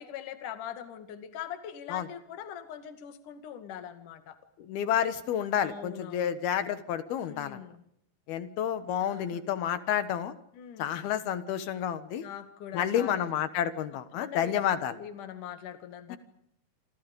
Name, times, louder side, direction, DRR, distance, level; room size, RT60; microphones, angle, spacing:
voice 1, 0.0-4.4 5.6-6.3 7.3-7.8 9.0-9.4 10.5-10.9 12.2-13.3 14.1-14.6 15.0-16.2, left 9 dB, 55° left, 9 dB, 3.3 m, -42 dB
voice 2, 4.6-7.6 8.3-10.3 10.8-12.3 12.7-14.9, left 9 dB, 70° left, 12 dB, 3.1 m, -30 dB
28.0 x 27.0 x 5.4 m, 0.73 s
omnidirectional pair, 4.8 m